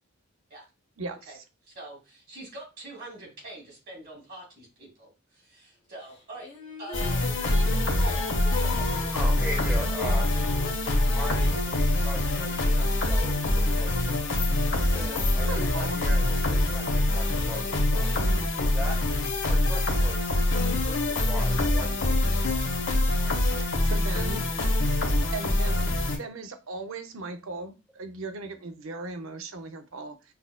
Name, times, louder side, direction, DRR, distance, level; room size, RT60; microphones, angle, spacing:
voice 1, 1.0-1.3 15.5-16.0 23.8-24.5 25.3-30.3, right 3 dB, 70° right, 7 dB, 0.6 m, -37 dB
voice 2, 1.6-6.5 6.8-8.2 8.6-8.9, right 1 dB, 45° right, -1 dB, 2.1 m, -44 dB
Female singing, 6.1-13.0 13.7-17.4, left 4 dB, 25° left, 0.8 m, -42 dB
sound 1, 6.9-26.2, left 1 dB, 60° left, 0.8 m, -25 dB
voice 3, 9.1-10.3 11.1-14.2 14.9-18.2 18.6-19.0 19.5-20.3 20.9-22.4, equal, 5° right, 0 dB, 0.7 m, -39 dB
5.6 x 2.3 x 2.2 m, 0.28 s
head